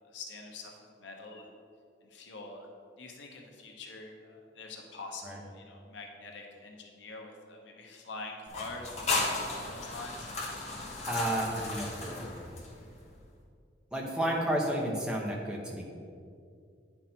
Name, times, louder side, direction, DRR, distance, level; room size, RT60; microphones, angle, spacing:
voice 1, 0.0-0.7 1.0-1.5 2.0-2.7 3.0-10.3, left 3 dB, 80° left, 1 dB, 1.0 m, -45 dB
sound 1, 8.5-13.0, left 3 dB, 35° left, 1.2 m, -35 dB
voice 2, 11.1-12.3 13.9-15.8, right 1 dB, 5° right, -2 dB, 1.0 m, -31 dB
9.2 x 5.7 x 4.4 m, 2.4 s
head